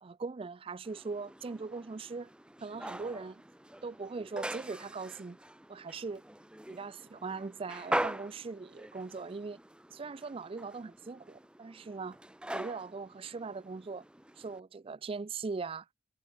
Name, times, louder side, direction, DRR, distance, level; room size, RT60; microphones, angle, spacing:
voice 1, 0.0-2.3 2.6-3.4 3.8-5.4 5.7-6.2 6.7-9.6 9.9-12.2 12.5-14.0 14.4-15.9, right 4 dB, 30° right, 0.4 m, -40 dB
sound 1, 0.8-14.6, right 1 dB, 5° right, 0.7 m, -42 dB
head